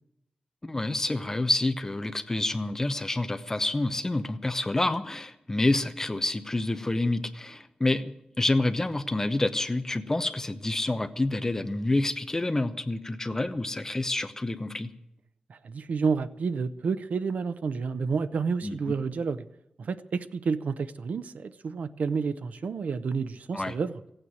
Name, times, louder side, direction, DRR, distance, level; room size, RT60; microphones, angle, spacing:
voice 1, 0.6-14.9 18.6-18.9 23.5-23.7, left 2 dB, 20° left, 10 dB, 0.9 m, -28 dB
voice 2, 15.5-19.4 19.8-23.9, right 5 dB, 75° right, 13 dB, 0.7 m, -30 dB
15.5 x 8.9 x 9.4 m, 0.83 s
wide cardioid pair, 160°, 3 cm